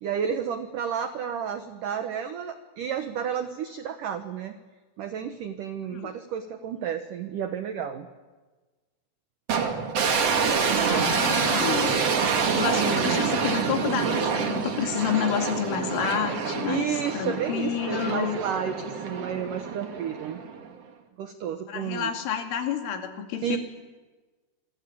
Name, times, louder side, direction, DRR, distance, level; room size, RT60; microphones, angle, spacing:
voice 1, 0.0-4.6 5.0-8.1 11.1-11.4 12.1-13.2 16.7-20.4 21.2-22.1 23.4-23.6, right 8 dB, 85° right, 8 dB, 1.8 m, -31 dB
sound 1, 9.5-20.7, right 5 dB, 45° right, 2.2 m, -27 dB
voice 2, 10.9-12.0 12.5-18.4 21.7-23.6, left 8 dB, 85° left, 5 dB, 4.8 m, -29 dB
27.0 x 25.0 x 8.6 m, 1.3 s
omnidirectional pair, 5.5 m